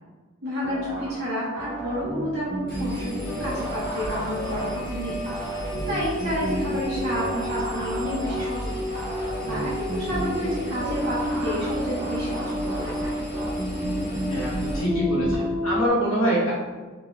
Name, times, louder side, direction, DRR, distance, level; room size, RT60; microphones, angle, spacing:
voice 1, 0.4-5.2 5.6-13.3, equal, 50° right, -9 dB, 1.1 m, -30 dB
sound 1, 0.6-15.4, right 1 dB, 90° right, 1.1 m, -33 dB
Engine, 2.7-14.8, equal, 50° left, 1.3 m, -37 dB
sound 2, 3.3-15.9, left 1 dB, 15° right, 0.5 m, -32 dB
voice 2, 14.3-16.5, equal, 80° left, -7 dB, 1.1 m, -25 dB
3.6 x 2.9 x 3.0 m, 1.3 s
head